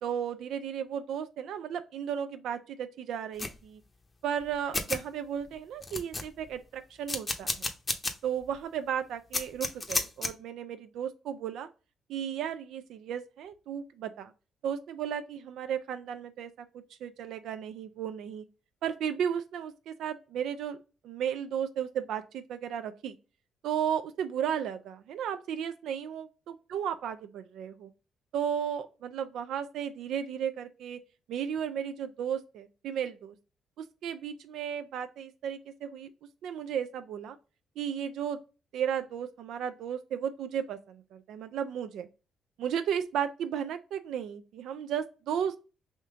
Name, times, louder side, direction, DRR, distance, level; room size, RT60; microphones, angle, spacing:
voice 1, 0.0-3.8 4.2-7.7 8.2-11.7 12.1-14.3 14.6-18.4 18.8-20.8 21.0-23.2 23.6-27.9 28.3-31.0 31.3-33.3 33.8-36.1 36.4-37.4 37.8-38.4 38.7-42.1 42.6-45.6, right 8 dB, 80° right, 0.3 m, -34 dB
sound 1, 3.4-3.6 4.4-4.5 4.7-5.0 5.5-5.6 5.8-6.5 7.1-8.1 8.5-8.6 9.3-10.3, left 3 dB, 25° left, 0.7 m, -31 dB
3.5 x 2.8 x 3.6 m
cardioid pair, 90°, 0 cm